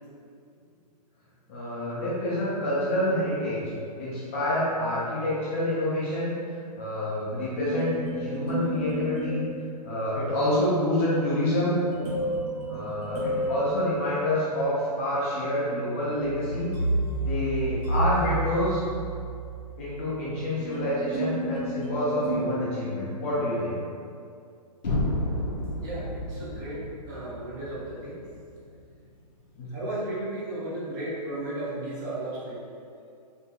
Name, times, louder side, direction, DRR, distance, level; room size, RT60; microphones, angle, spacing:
voice 1, 1.5-3.7 4.0-9.4 9.8-11.8 12.7-16.7 17.2-18.8 19.8-23.8 29.6-29.8, left 1 dB, 20° left, -8 dB, 0.3 m, -27 dB
sound 1, 7.5-10.1 11.8-14.8 16.2-23.5, right 1 dB, 65° right, 1.0 m, -31 dB
sound 2, 24.8-28.8, left 1 dB, 90° left, 0.5 m, -32 dB
voice 2, 25.8-28.2 29.7-32.6, right 1 dB, 30° right, -7 dB, 0.6 m, -34 dB
2.7 x 2.6 x 2.2 m, 2.4 s
hypercardioid pair, 145°, 21 cm